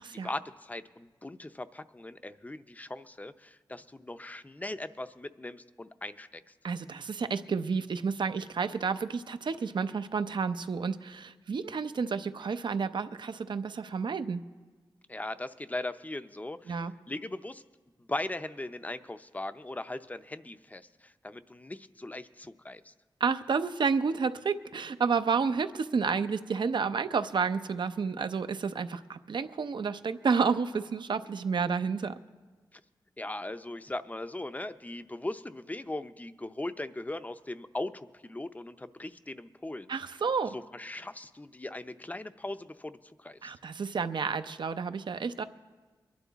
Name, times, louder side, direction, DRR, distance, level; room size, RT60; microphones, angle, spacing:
voice 1, 0.2-6.4 15.1-17.6 18.0-22.9 32.7-32.8 33.2-39.9 40.5-43.5, left 2 dB, 20° left, 11 dB, 0.6 m, -39 dB
voice 2, 6.6-14.4 16.7-16.9 23.2-32.2 39.9-40.5 43.4-45.4, right 5 dB, 70° right, 11 dB, 0.6 m, -30 dB
23.0 x 11.5 x 4.0 m, 1.3 s
wide cardioid pair, 75°, 8 cm